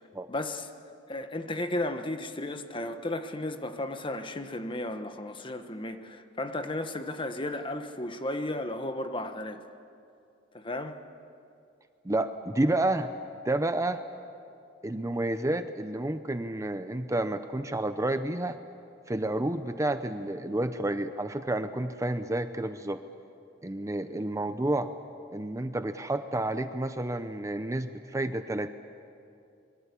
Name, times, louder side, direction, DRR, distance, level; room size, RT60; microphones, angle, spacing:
voice 1, 0.3-0.7 1.1-9.6 10.5-10.9, left 1 dB, 25° left, 1.3 m, -34 dB
voice 2, 12.0-13.1 13.4-14.0 14.8-18.6 19.1-23.0 23.6-24.9 25.3-28.7, right 1 dB, 15° right, 0.7 m, -30 dB
25.5 x 22.5 x 8.4 m
head